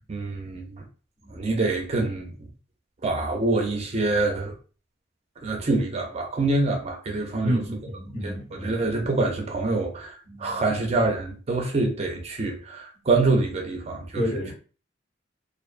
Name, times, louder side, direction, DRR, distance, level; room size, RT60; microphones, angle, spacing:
voice 1, 0.1-0.8 1.3-2.3 3.0-4.5 5.4-7.6 8.2-14.2, right 3 dB, 35° right, 0.4 m, -26 dB
voice 2, 7.4-8.7 10.2-10.6 14.2-14.5, equal, 35° left, 1.0 m, -29 dB
2.4 x 2.2 x 2.4 m
head